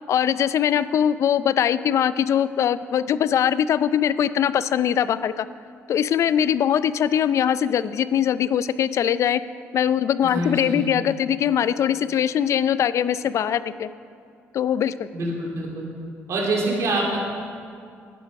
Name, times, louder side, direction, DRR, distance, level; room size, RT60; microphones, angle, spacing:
voice 1, 0.1-5.5 5.9-9.4 9.7-13.9 14.5-15.1, left 9 dB, 65° left, 15 dB, 0.4 m, -22 dB
voice 2, 10.2-10.8 15.1-15.9 16.3-17.2, right 2 dB, 65° right, -2 dB, 3.0 m, -25 dB
11.5 x 10.0 x 5.4 m, 2.4 s
cardioid pair, 75°, 6 cm